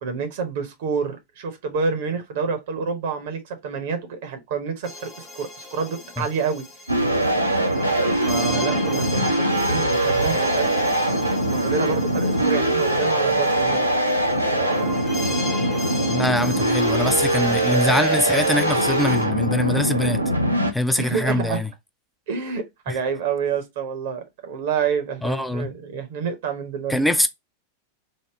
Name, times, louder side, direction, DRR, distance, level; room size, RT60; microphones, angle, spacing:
voice 1, 0.0-6.7 8.3-10.7 11.5-14.1 21.0-21.6 22.3-27.0, right 6 dB, 55° right, 0.7 m, -28 dB
sound 1, 4.8-19.2, left 2 dB, 25° left, 0.9 m, -36 dB
sound 2, 6.9-20.7, right 1 dB, 90° right, 0.5 m, -22 dB
voice 2, 16.1-20.2 20.7-21.7 22.9-23.0 25.2-25.7 26.9-27.3, left 1 dB, 5° left, 0.4 m, -23 dB
3.5 x 2.0 x 3.4 m
figure-of-eight pair, 90°, 0 cm